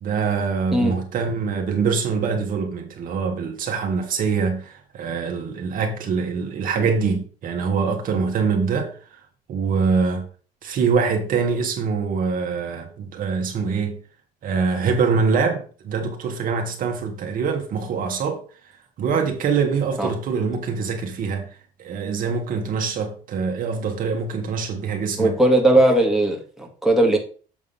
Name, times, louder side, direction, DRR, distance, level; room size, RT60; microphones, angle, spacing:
voice 1, 0.0-8.9 9.5-10.2 10.6-14.0 14.4-18.4 19.0-21.5 21.8-25.4, right 5 dB, 50° right, 1.6 m, -24 dB
voice 2, 25.2-27.2, right 1 dB, ahead, 1.7 m, -18 dB
7.4 x 3.6 x 5.5 m
cardioid pair, 125°, 18 cm